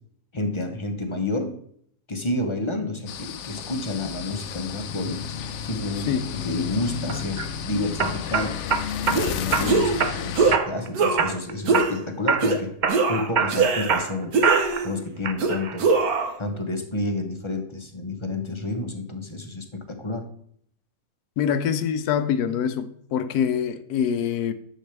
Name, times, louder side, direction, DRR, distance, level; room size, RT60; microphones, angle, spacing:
voice 1, 0.3-1.5 2.1-5.2 5.6-8.6 9.1-12.8 13.1-14.4 14.8-15.9 16.4-20.2, left 2 dB, 30° left, 0.6 m, -30 dB
sound 1, 3.1-10.6, left 8 dB, 65° left, 0.8 m, -32 dB
sound 2, 7.1-7.5 8.0-9.2 9.5-10.2 10.5-10.9 11.2-12.0 12.3-12.5 12.8-14.9 15.2-15.8, right 5 dB, 60° right, 0.5 m, -24 dB
sound 3, 9.1-9.3 9.6-10.0 10.3-10.6 10.9-11.3 11.7-11.9 12.4-12.6 12.9-14.0 14.3-15.0 15.4-16.3, right 4 dB, 75° right, 1.5 m, -22 dB
voice 2, 21.4-24.5, left 8 dB, 85° left, 1.2 m, -24 dB
10.0 x 6.6 x 3.3 m
omnidirectional pair, 1.6 m